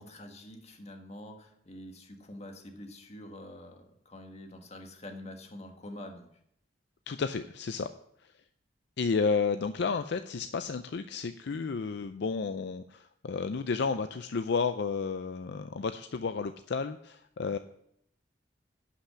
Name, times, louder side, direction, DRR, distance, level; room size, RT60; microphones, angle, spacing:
voice 1, 0.0-6.3, left 1 dB, 35° left, 4 dB, 1.6 m, -46 dB
voice 2, 7.1-7.9 9.0-17.6, left 5 dB, 65° left, 9 dB, 0.5 m, -32 dB
11.5 x 5.8 x 6.9 m, 0.72 s
head